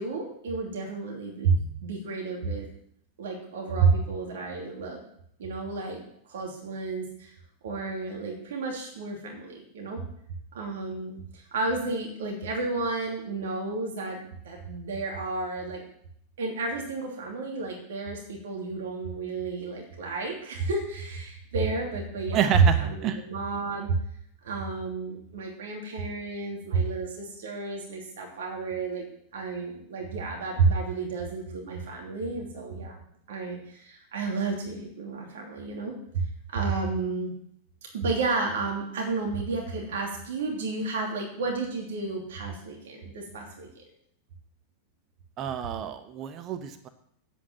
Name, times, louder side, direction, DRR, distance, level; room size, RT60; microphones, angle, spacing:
voice 1, 0.0-2.7 3.2-5.0 5.4-6.0 6.3-7.3 7.6-10.0 10.5-15.8 16.4-24.0 24.4-29.0 29.3-33.0 33.3-36.2 36.5-37.3 37.9-43.8, right 4 dB, 60° right, 0 dB, 2.9 m, -30 dB
voice 2, 22.3-23.2 45.4-46.9, right 8 dB, 35° right, 9 dB, 1.0 m, -29 dB
9.3 x 8.4 x 7.5 m, 0.69 s
figure-of-eight pair, 90°, 0 cm